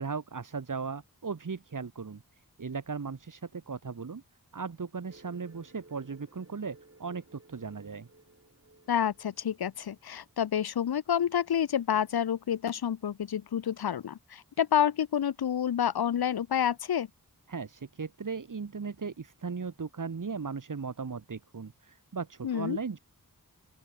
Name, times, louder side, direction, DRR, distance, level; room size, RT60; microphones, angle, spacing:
voice 1, 0.0-2.2 2.6-4.2 4.5-8.1 17.5-23.0, right 5 dB, 60° right, 1.0 m, -37 dB
sound 1, 5.1-10.3, right 2 dB, 40° right, 2.5 m, -58 dB
voice 2, 8.9-17.1 22.4-22.8, left 9 dB, 90° left, 0.5 m, -29 dB
open air
wide cardioid pair, 50°, 36 cm